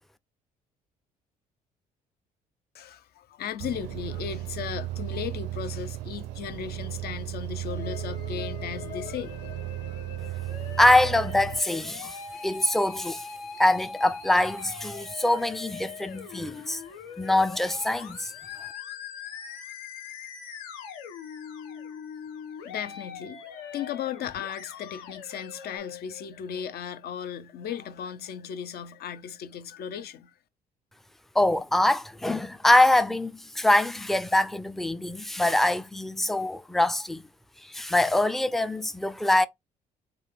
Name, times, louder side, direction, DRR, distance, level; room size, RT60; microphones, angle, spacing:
voice 1, 2.7-9.6 22.6-30.4, left 8 dB, 55° left, 0.6 m, -36 dB
sound 1, 3.6-11.6, right 14 dB, 70° right, 0.4 m, -35 dB
Musical instrument, 7.8-25.8, left 6 dB, 75° left, 1.0 m, -42 dB
voice 2, 10.8-12.2 12.4-13.3 13.6-16.8 17.2-18.3 31.4-37.2 37.6-39.5, left 1 dB, ahead, 0.4 m, -24 dB
3.2 x 2.3 x 3.5 m
hypercardioid pair, 55°, 19 cm